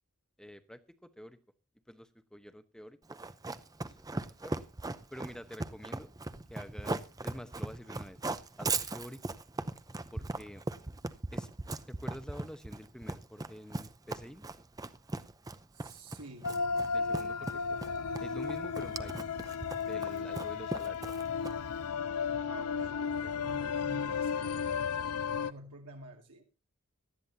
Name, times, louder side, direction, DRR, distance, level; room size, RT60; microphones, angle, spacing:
voice 1, 0.4-1.4 1.9-3.2 3.8-4.6 5.1-6.1 6.5-8.2 8.6-9.4 10.1-10.6 11.3-11.5 11.9-14.4 16.9-17.8 18.2-19.3 19.8-21.0, equal, 5° left, 10 dB, 1.0 m, -48 dB
Run, 3.1-21.8, right 2 dB, 15° right, 0.6 m, -38 dB
voice 2, 15.7-16.5 22.5-25.0 25.3-26.4, right 1 dB, 80° right, 0 dB, 2.2 m, -49 dB
sound 1, 16.4-25.5, left 6 dB, 85° left, 0.5 m, -34 dB
18.5 x 13.0 x 2.8 m, 0.30 s
head